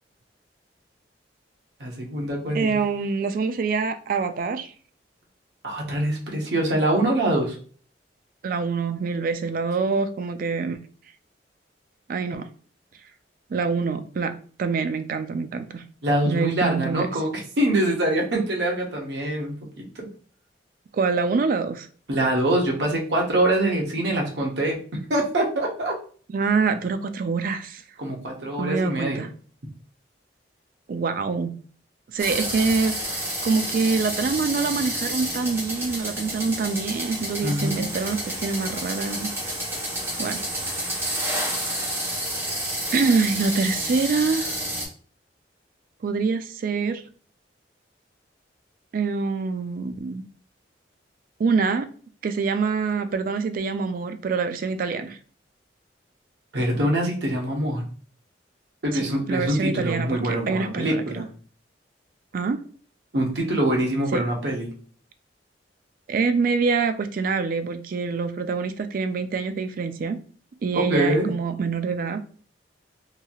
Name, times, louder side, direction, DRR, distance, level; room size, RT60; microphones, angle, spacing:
voice 1, 1.8-2.8 5.6-7.6 16.0-19.6 20.0-20.1 22.1-26.0 28.0-29.2 37.4-37.9 56.5-57.8 58.8-61.2 63.1-64.7 70.7-71.3, right 1 dB, 70° right, -1 dB, 0.9 m, -24 dB
voice 2, 2.5-4.7 8.4-10.8 12.1-12.5 13.5-14.3 14.6-15.8 16.3-17.1 20.9-21.9 26.3-27.8 28.6-29.3 30.9-31.5 32.1-33.0 33.4-39.5 40.2-40.4 42.9-44.6 46.0-47.0 48.9-50.2 51.4-51.9 52.2-55.2 58.9-61.2 62.3-62.6 64.1-64.2 66.1-70.2 70.6-72.2, right 4 dB, 50° right, 9 dB, 0.3 m, -25 dB
sound 1, 32.2-44.9, right 1 dB, 15° right, 1.0 m, -30 dB
3.1 x 2.7 x 2.3 m, 0.43 s
head